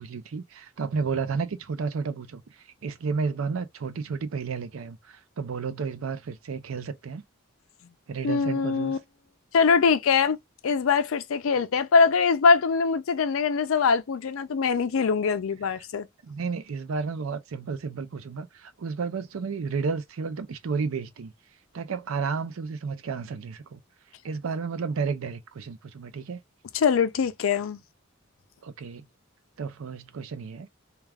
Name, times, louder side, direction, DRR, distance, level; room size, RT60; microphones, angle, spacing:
voice 1, 0.0-7.2 8.1-9.0 16.2-21.3 21.7-23.8 24.2-26.4 28.6-29.0 29.6-30.7, right 5 dB, 75° right, 0.5 m, -32 dB
voice 2, 8.2-9.0 9.5-10.4 10.6-16.1 26.7-27.8, left 5 dB, 75° left, 0.4 m, -23 dB
2.3 x 2.3 x 3.3 m
head